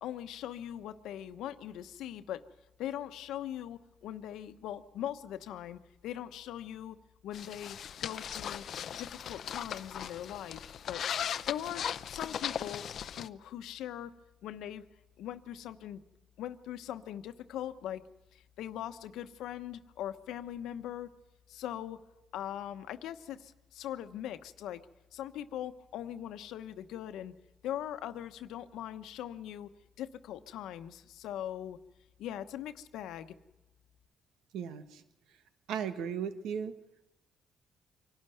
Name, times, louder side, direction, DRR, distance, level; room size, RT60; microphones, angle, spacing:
voice 1, 0.0-2.4 2.8-7.0 7.2-8.6 9.0-10.6 10.9-11.0 11.5-12.8 13.1-14.1 14.4-14.8 15.2-16.0 16.4-18.0 18.3-21.1 21.5-22.0 22.3-24.9 25.1-27.3 27.6-29.7 30.0-31.8 32.2-33.3, left 11 dB, 85° left, 10 dB, 1.0 m, -41 dB
Packing a pillow in a backpack, 7.3-13.3, left 9 dB, 65° left, 0.7 m, -38 dB
voice 2, 34.5-35.0 35.7-36.7, right 7 dB, 85° right, 10 dB, 1.4 m, -36 dB
25.0 x 12.5 x 9.2 m, 1.0 s
cardioid pair, 90°, 0 cm